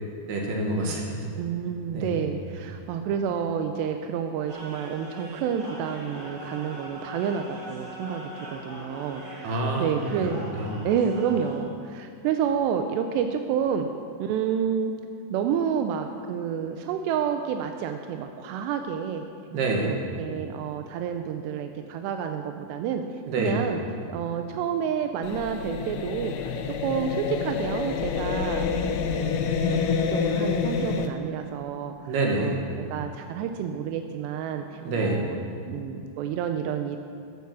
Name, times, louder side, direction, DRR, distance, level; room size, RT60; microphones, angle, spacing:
voice 1, 0.3-1.0 1.9-2.2 9.4-9.9 10.2-10.7 19.5-20.0 23.3-23.6 32.1-32.6 34.8-35.3, right 2 dB, 70° right, 0 dB, 3.8 m, -27 dB
voice 2, 1.4-10.5 10.8-13.9 14.2-14.9 15.3-19.3 19.8-23.0 23.4-23.8 24.1-29.3 29.7-35.4 35.7-37.0, right 7 dB, 90° right, 6 dB, 2.9 m, -29 dB
sound 1, 4.5-11.6, equal, 50° right, 4.8 m, -41 dB
sound 2, 25.2-31.1, left 6 dB, 75° left, 2.1 m, -27 dB
15.0 x 9.4 x 6.9 m, 2.4 s
omnidirectional pair, 4.8 m